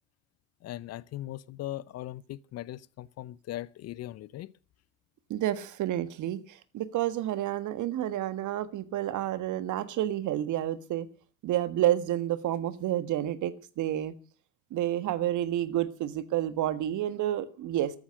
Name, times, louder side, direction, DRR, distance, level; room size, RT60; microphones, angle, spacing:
voice 1, 0.6-4.5, left 14 dB, 40° left, 0.7 m, -39 dB
voice 2, 5.3-11.1 11.4-14.1 14.7-17.9, right 12 dB, 45° right, 1.6 m, -30 dB
14.0 x 11.5 x 6.4 m
hypercardioid pair, 70°, 41 cm